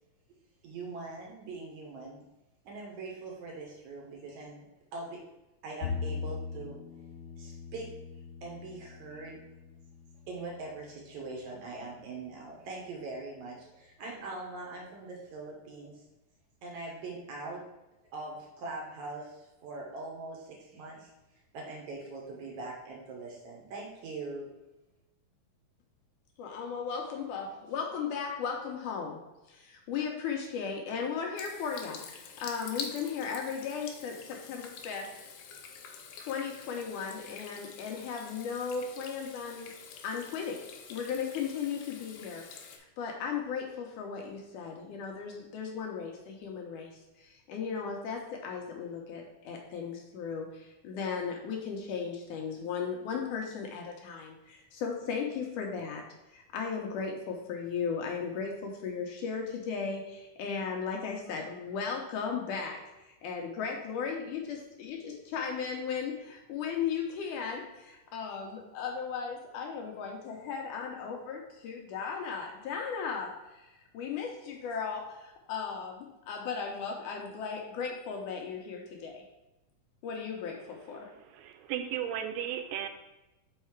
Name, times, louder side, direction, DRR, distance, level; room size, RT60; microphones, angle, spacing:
voice 1, 0.6-2.2 2.6-4.7 4.9-5.2 5.6-6.8 7.4-7.9 8.4-9.4 10.3-16.0 16.6-17.6 18.1-21.1 21.5-24.5, right 3 dB, 70° right, -1 dB, 2.2 m, -42 dB
Bowed string instrument, 5.8-12.1, left 5 dB, 45° left, 1.8 m, -41 dB
voice 2, 26.4-29.2 29.5-35.1 36.2-39.7 40.0-40.6 40.9-56.0 56.3-62.8 63.2-79.2 80.0-81.1, left 6 dB, 75° left, 1 dB, 2.1 m, -36 dB
Water tap faucet / Sink (filling or washing), 31.4-42.8, left 6 dB, 90° left, 2.5 m, -46 dB
voice 3, 81.3-82.9, right 10 dB, 85° right, 7 dB, 2.2 m, -35 dB
5.6 x 4.1 x 4.5 m, 0.98 s
omnidirectional pair, 4.0 m